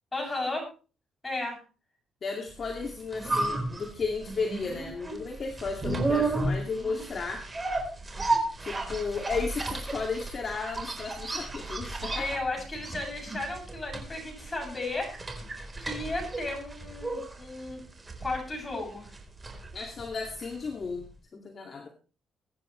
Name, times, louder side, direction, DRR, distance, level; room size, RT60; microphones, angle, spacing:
voice 1, 0.1-0.7 1.2-1.6 12.1-15.1 15.8-17.8 18.2-19.1, left 2 dB, 20° left, 2 dB, 7.8 m, -34 dB
voice 2, 2.2-7.4 8.6-12.4 19.7-21.9, left 4 dB, 45° left, 1 dB, 2.4 m, -34 dB
sound 1, 2.7-20.7 21.0-21.1, right 2 dB, 20° right, 4.1 m, -33 dB
22.5 x 10.0 x 3.3 m, 0.36 s
cardioid pair, 90°, 0 cm